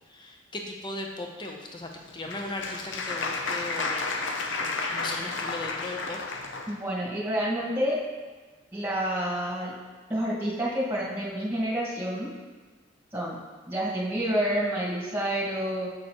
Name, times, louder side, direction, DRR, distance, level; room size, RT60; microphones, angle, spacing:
voice 1, 0.1-4.1 4.6-6.2, left 2 dB, 25° left, 1 dB, 0.7 m, -37 dB
Applause, 1.9-6.7, left 3 dB, 75° left, 0.7 m, -32 dB
voice 2, 6.7-8.0 8.7-9.8 10.1-12.3 13.1-13.4 13.7-15.9, equal, 10° right, -6 dB, 1.8 m, -28 dB
7.5 x 6.6 x 3.1 m, 1.3 s
head